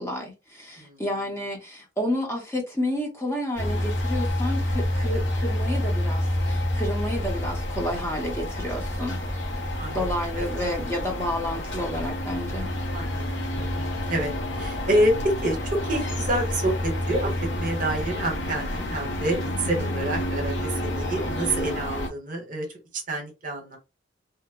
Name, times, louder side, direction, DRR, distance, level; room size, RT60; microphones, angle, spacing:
voice 1, 0.0-9.2 9.9-12.7, left 1 dB, 15° left, 0.7 m, -30 dB
sound 1, 3.6-22.1, left 1 dB, 60° left, 1.0 m, -28 dB
voice 2, 9.4-10.0 10.3-10.6 12.9-22.7 23.1-23.8, right 1 dB, 40° right, 0.9 m, -28 dB
2.9 x 2.1 x 3.6 m
head